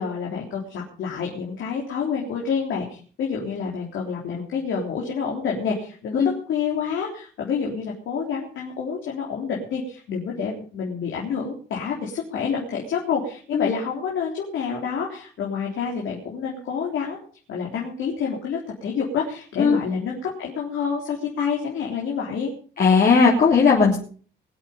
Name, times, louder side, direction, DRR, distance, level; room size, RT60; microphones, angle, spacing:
voice 1, 0.0-17.2 17.5-22.5, left 6 dB, 75° left, -2 dB, 3.8 m, -28 dB
voice 2, 22.8-24.0, left 5 dB, 50° left, -3 dB, 3.4 m, -17 dB
22.0 x 8.8 x 5.4 m, 0.42 s
cardioid pair, 90°, 20 cm